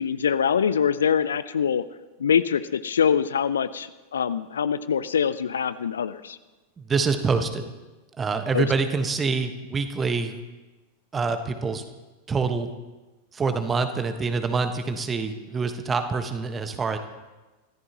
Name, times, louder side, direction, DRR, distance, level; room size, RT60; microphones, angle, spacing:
voice 1, 0.0-1.8 2.2-6.4 8.5-8.7, left 7 dB, 70° left, 15 dB, 0.5 m, -24 dB
voice 2, 6.8-7.7 8.2-10.3 11.1-11.8 12.3-12.7 13.3-17.0, right 4 dB, 20° right, 8 dB, 1.4 m, -26 dB
25.0 x 14.5 x 3.0 m, 1.2 s
figure-of-eight pair, 90°, 0 cm